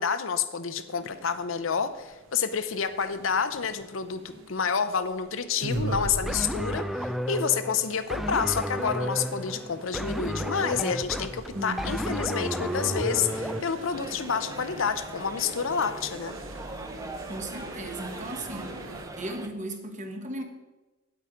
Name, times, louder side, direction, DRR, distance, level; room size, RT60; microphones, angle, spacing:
voice 1, 0.0-16.4, left 6 dB, 70° left, 10 dB, 0.7 m, -29 dB
sound 1, 0.9-19.0, right 1 dB, 70° right, 1.2 m, -41 dB
sound 2, 6.3-13.6, equal, ahead, 0.3 m, -32 dB
voice 2, 11.5-12.2 17.3-18.9 19.1-20.4, right 1 dB, 35° right, 5 dB, 1.2 m, -36 dB
sound 3, 13.9-19.5, right 2 dB, 15° right, 0.7 m, -41 dB
8.9 x 8.3 x 5.0 m, 1.1 s
head